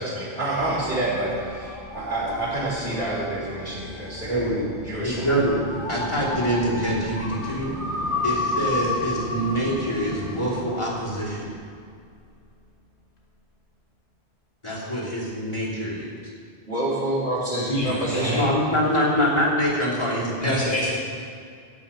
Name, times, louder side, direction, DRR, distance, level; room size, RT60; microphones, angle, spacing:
voice 1, 0.0-5.3 16.7-18.5, right 1 dB, 80° right, -10 dB, 3.2 m, -28 dB
sound 1, 0.6-11.6, left 3 dB, 60° left, 1.6 m, -33 dB
voice 2, 4.3-4.7 5.0-7.7 8.2-11.5 14.6-16.2 18.3-20.5, equal, 30° left, -6 dB, 3.2 m, -25 dB
sound 2, 5.6-10.6, right 1 dB, 5° right, 2.2 m, -37 dB
voice 3, 17.7-18.5 20.4-20.9, equal, 45° left, -7 dB, 3.3 m, -25 dB
13.5 x 5.7 x 8.9 m, 2.2 s
omnidirectional pair, 1.0 m